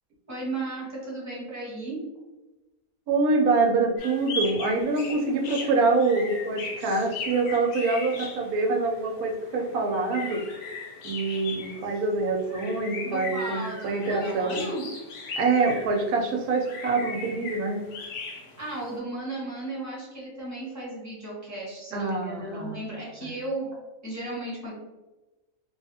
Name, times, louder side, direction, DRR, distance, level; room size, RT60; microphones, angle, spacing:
voice 1, 0.3-2.0 13.0-14.9 18.6-23.8 24.0-24.7, right 2 dB, 10° right, -7 dB, 1.1 m, -35 dB
voice 2, 3.1-10.4 10.7-10.8 11.0-14.7 15.4-17.8 21.9-22.8 23.2-23.3, right 3 dB, 80° right, 2 dB, 1.1 m, -25 dB
sound 1, 4.0-19.0, left 3 dB, 85° left, 1.2 m, -38 dB
3.0 x 2.3 x 2.7 m, 1.1 s
omnidirectional pair, 1.6 m